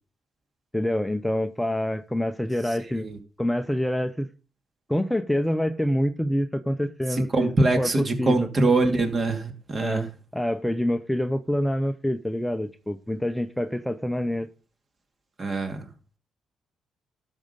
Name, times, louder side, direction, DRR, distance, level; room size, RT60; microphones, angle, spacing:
voice 1, 0.7-3.1 3.4-4.3 4.9-7.9 8.2-8.4 9.8-10.1 10.3-14.5, left 1 dB, 5° left, 9 dB, 0.7 m, -26 dB
voice 2, 7.1-10.0 15.4-15.9, right 2 dB, 35° right, 6 dB, 2.6 m, -23 dB
12.5 x 6.5 x 5.4 m, 0.35 s
cardioid pair, 90°, 0 cm